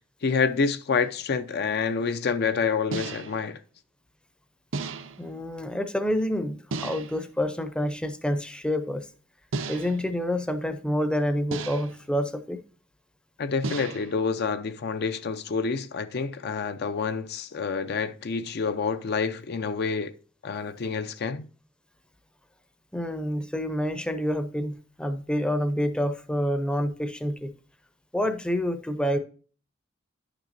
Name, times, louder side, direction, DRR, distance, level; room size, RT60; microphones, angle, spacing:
voice 1, 0.2-3.6 13.4-20.1 20.4-21.5, left 5 dB, 55° left, 0.5 m, -28 dB
sound 1, 1.0-1.2 2.9-3.5 4.7-5.3 6.7-7.3 9.5-10.1 11.5-12.1 13.6-14.2, right 3 dB, 80° right, 0.7 m, -34 dB
voice 2, 5.2-9.0 9.7-12.6 22.9-27.5 28.1-29.2, equal, 5° left, 0.6 m, -28 dB
10.5 x 6.0 x 2.6 m
head